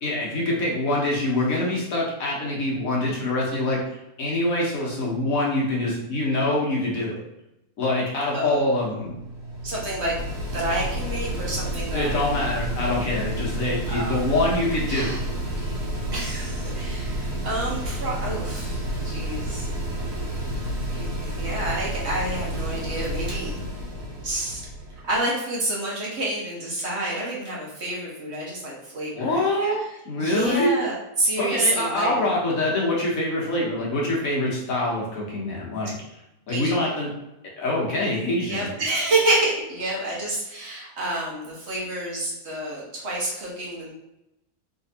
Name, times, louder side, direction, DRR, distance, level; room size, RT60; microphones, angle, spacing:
voice 1, 0.0-3.8 4.2-7.2 7.8-9.2 11.9-15.2 29.1-29.8 30.0-30.8 31.4-35.9 36.5-37.1 37.6-38.7, left 1 dB, 55° left, -4 dB, 1.4 m, -25 dB
Mechanical fan, 8.9-25.2, right 1 dB, 60° right, 1.5 m, -30 dB
voice 2, 9.6-12.3 13.9-14.2 14.9-15.2 15.6-15.7 16.1-19.7 20.9-23.5 24.2-24.6 25.1-29.4 30.2-32.1 36.5-36.8 38.4-43.9, right 1 dB, 45° right, -5 dB, 1.1 m, -28 dB
3.4 x 3.0 x 2.8 m, 0.90 s
omnidirectional pair, 1.8 m